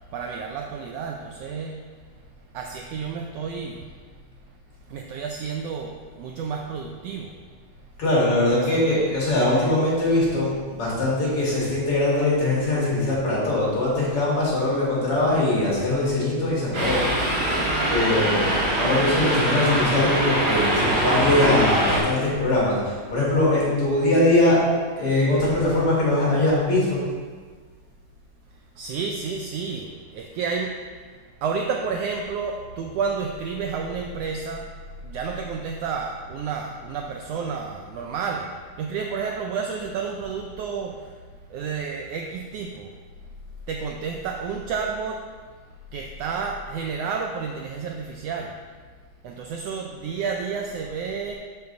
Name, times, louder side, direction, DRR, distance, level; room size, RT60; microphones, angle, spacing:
voice 1, 0.1-1.8 2.5-3.9 4.9-7.4 8.6-8.9 28.7-34.7 35.0-41.2 41.5-42.9 43.7-45.2 45.9-48.6 49.2-51.4, right 5 dB, 90° right, 2 dB, 1.4 m, -31 dB
voice 2, 8.0-17.0 17.9-24.6 25.0-27.0, left 2 dB, 50° left, -7 dB, 2.9 m, -22 dB
sound 1, 16.7-22.0, right 1 dB, 65° right, 3.1 m, -23 dB
6.9 x 6.6 x 3.9 m, 1.5 s
omnidirectional pair, 3.4 m